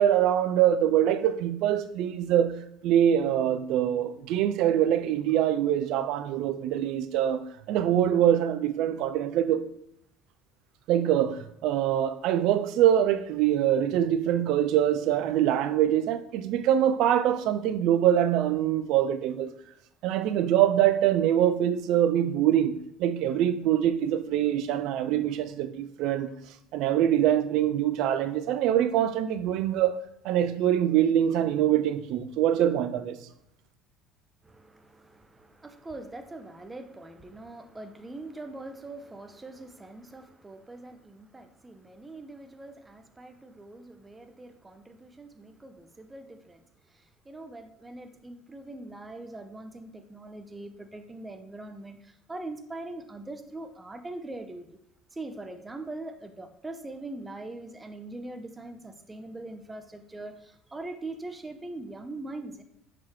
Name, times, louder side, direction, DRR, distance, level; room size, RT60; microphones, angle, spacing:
voice 1, 0.0-2.6 2.8-7.4 7.7-9.6 10.9-19.5 20.0-26.3 26.7-30.0 30.2-33.2, right 11 dB, 65° right, 0.5 m, -24 dB
voice 2, 34.4-54.7 55.1-62.6, right 2 dB, 20° right, 0.8 m, -42 dB
6.2 x 5.9 x 3.1 m
hypercardioid pair, 65°, 0 cm